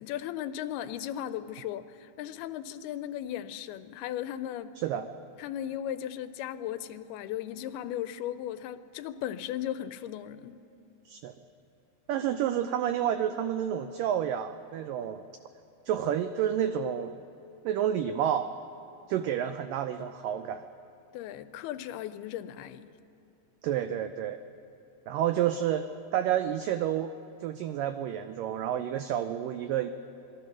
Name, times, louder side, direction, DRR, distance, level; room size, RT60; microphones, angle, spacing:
voice 1, 0.0-4.8 5.4-10.6 21.1-22.9, left 11 dB, 80° left, 12 dB, 2.5 m, -36 dB
voice 2, 4.8-5.1 11.1-11.3 12.1-15.2 15.9-17.2 17.6-18.5 19.1-20.6 23.6-24.4 25.1-27.1 27.4-29.9, right 10 dB, 85° right, 9 dB, 1.9 m, -29 dB
26.5 x 20.5 x 6.2 m, 3.0 s
omnidirectional pair, 4.7 m